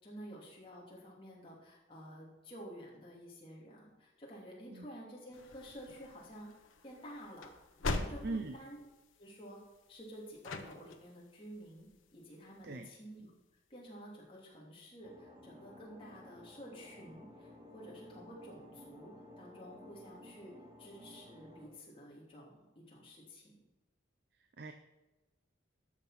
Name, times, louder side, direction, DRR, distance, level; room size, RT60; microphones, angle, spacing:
voice 1, 0.0-6.5 6.8-7.5 7.8-8.8 9.2-9.6 9.9-11.9 12.1-13.3 13.7-23.6, equal, 25° left, -4 dB, 3.1 m, -51 dB
sound 1, 5.3-12.6, left 2 dB, 85° left, 1.0 m, -44 dB
voice 2, 8.2-8.5 12.6-12.9 24.6-24.7, right 3 dB, 55° right, 6 dB, 0.6 m, -39 dB
sound 2, 15.0-21.7, left 1 dB, 20° right, 1.7 m, -55 dB
13.5 x 6.0 x 5.9 m, 1.1 s
head